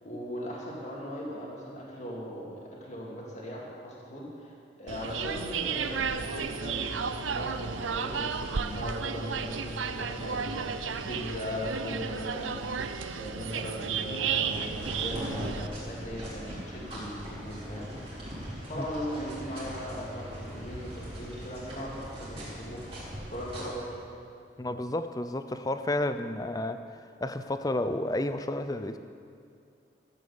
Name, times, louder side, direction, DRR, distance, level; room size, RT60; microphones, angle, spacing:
voice 1, 0.0-4.5 4.8-12.7 13.2-17.9 18.7-22.8 23.3-23.9, equal, 40° left, -4 dB, 2.3 m, -38 dB
sound 1, 4.9-15.7, right 6 dB, 90° right, 0.6 m, -33 dB
sound 2, 14.5-23.6, equal, 30° right, 3.4 m, -40 dB
voice 2, 24.6-26.8 27.2-29.0, left 1 dB, 20° left, 10 dB, 0.5 m, -31 dB
13.0 x 8.3 x 7.1 m, 2.4 s
head